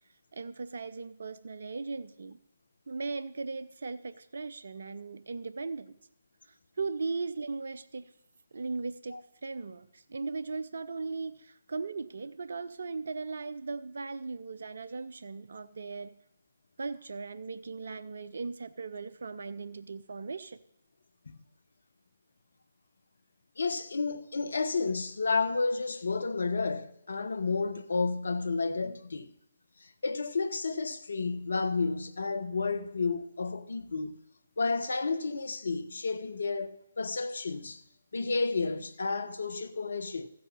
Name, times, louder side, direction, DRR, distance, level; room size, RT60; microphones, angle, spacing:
voice 1, 0.3-2.4 2.9-5.9 6.5-8.1 8.5-16.1 16.8-20.6, right 4 dB, 65° right, 0.6 m, -38 dB
voice 2, 23.6-29.3 29.8-34.2 34.6-37.8 38.1-40.3, left 4 dB, 65° left, 1.0 m, -31 dB
14.5 x 7.8 x 5.5 m
figure-of-eight pair, 140°, 0 cm